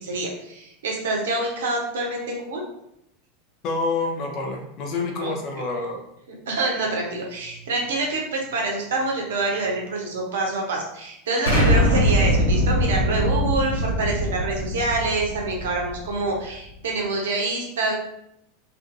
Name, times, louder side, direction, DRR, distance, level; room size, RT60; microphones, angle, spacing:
voice 1, 0.0-2.6 5.2-5.3 6.5-17.9, right 2 dB, 65° right, -1 dB, 0.7 m, -26 dB
voice 2, 3.6-6.0, left 3 dB, 45° left, 2 dB, 0.6 m, -27 dB
Explosion, 11.5-16.3, equal, 85° left, 0.7 m, -22 dB
2.5 x 2.5 x 2.5 m, 0.80 s
figure-of-eight pair, 85°, 0 cm